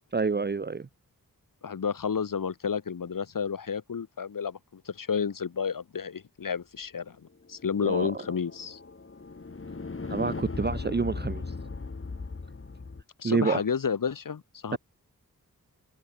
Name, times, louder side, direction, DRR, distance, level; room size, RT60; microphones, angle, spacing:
voice 1, 0.1-0.9 7.8-8.2 10.1-11.4 13.2-13.6 14.7-14.8, right 4 dB, 30° right, 0.7 m, -28 dB
voice 2, 1.6-7.2 7.5-8.8 13.2-14.8, left 6 dB, 65° left, 1.6 m, -31 dB
sound 1, 7.4-13.0, left 4 dB, 35° left, 1.9 m, -38 dB
open air
cardioid pair, 45°, 36 cm